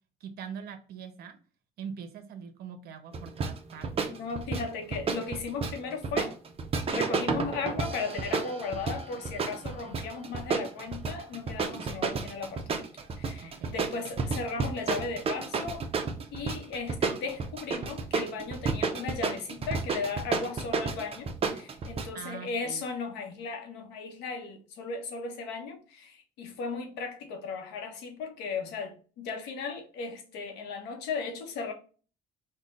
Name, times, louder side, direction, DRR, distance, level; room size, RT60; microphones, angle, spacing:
voice 1, 0.2-1.4 1.8-4.2 13.4-13.8 22.1-22.8, right 7 dB, 70° right, 0.7 m, -43 dB
sound 1, 3.1-22.1, right 4 dB, 35° right, 0.6 m, -31 dB
voice 2, 4.0-6.3 6.9-12.9 13.2-15.8 16.3-31.7, left 4 dB, 90° left, 0.9 m, -36 dB
3.8 x 2.2 x 3.8 m
cardioid pair, 110°, 17 cm